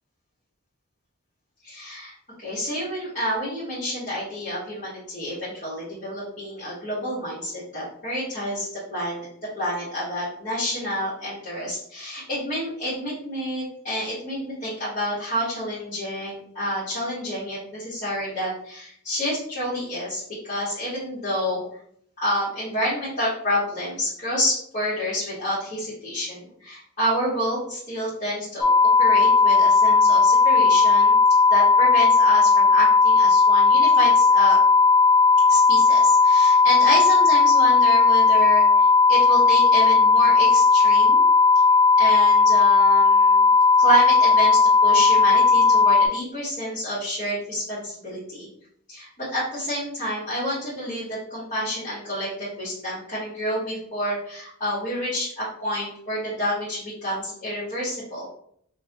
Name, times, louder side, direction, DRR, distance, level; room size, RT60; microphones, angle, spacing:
voice 1, 1.6-9.3 9.6-21.6 22.2-31.2 31.5-34.6 35.5-41.2 42.0-43.5 43.8-48.5 48.9-58.3, equal, 40° left, -11 dB, 1.3 m, -29 dB
sound 1, 28.6-46.1, left 4 dB, 10° left, 0.7 m, -16 dB
5.3 x 2.2 x 2.7 m, 0.66 s
head